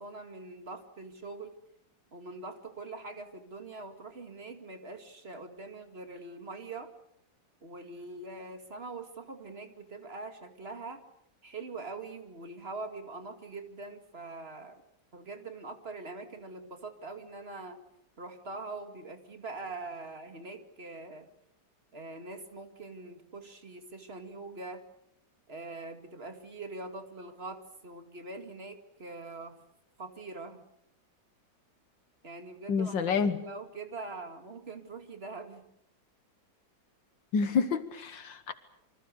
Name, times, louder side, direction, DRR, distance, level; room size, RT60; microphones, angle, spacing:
voice 1, 0.0-1.5 2.1-6.9 7.6-11.0 11.4-14.8 15.1-17.8 18.2-21.3 21.9-24.8 25.5-29.6 30.0-30.6 32.2-33.0 33.2-35.6, right 3 dB, 30° right, 7 dB, 2.6 m, -43 dB
voice 2, 32.7-33.4 37.3-38.5, left 5 dB, 70° left, 11 dB, 1.9 m, -28 dB
28.0 x 25.0 x 6.8 m, 0.73 s
omnidirectional pair, 2.1 m